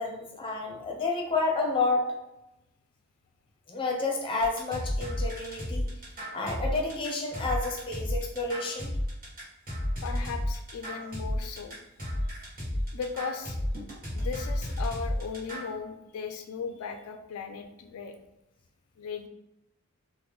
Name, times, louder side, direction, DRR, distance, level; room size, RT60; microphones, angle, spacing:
voice 1, 0.0-2.1 3.7-5.8 6.3-8.9, left 3 dB, 25° left, 0 dB, 0.6 m, -30 dB
sound 1, 4.4-15.7, left 1 dB, 45° right, 1.3 m, -32 dB
voice 2, 10.0-11.8 12.2-12.3 12.9-13.6 14.1-18.1 19.0-19.3, left 5 dB, 75° left, 6 dB, 0.3 m, -37 dB
3.1 x 2.1 x 3.4 m, 0.91 s
head